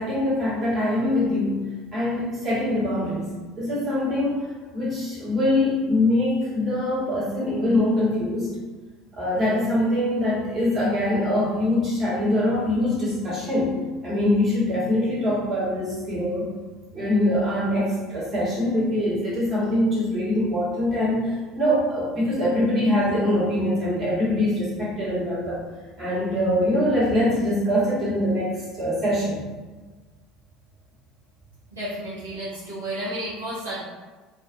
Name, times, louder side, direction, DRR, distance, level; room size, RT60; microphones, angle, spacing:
voice 1, 0.0-1.6 1.9-3.3 3.6-4.5 4.7-8.5 9.1-16.5 16.9-25.6 26.0-29.4, left 1 dB, 35° right, -8 dB, 1.2 m, -23 dB
voice 2, 31.7-33.8, right 1 dB, 85° right, -10 dB, 0.7 m, -32 dB
2.3 x 2.3 x 2.5 m, 1.3 s
figure-of-eight pair, 65°, 0 cm